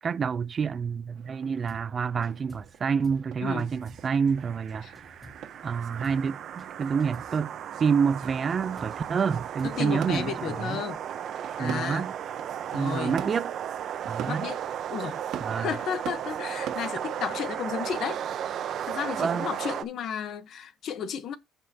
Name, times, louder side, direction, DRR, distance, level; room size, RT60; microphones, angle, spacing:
voice 1, 0.0-5.2 5.6-7.5 7.8-10.8 11.6-12.1 12.7-13.5 14.1-14.4 15.4-15.7 19.2-19.5, right 6 dB, 35° right, 0.5 m, -28 dB
sound 1, 1.2-17.4, right 9 dB, 70° right, 1.7 m, -45 dB
sound 2, 1.7-1.9 2.2-2.8 3.0-3.3 3.6-5.7 6.0-6.3 6.6-7.4 8.2-10.4, left 1 dB, 5° left, 3.2 m, -51 dB
sound 3, 3.7-19.8, right 9 dB, 55° right, 0.9 m, -35 dB
voice 2, 9.6-11.0 11.6-12.1 12.7-13.2 14.3-15.2 15.5-18.2 18.9-21.4, left 8 dB, 55° left, 1.1 m, -33 dB
15.0 x 5.4 x 2.9 m
cardioid pair, 140°, 0 cm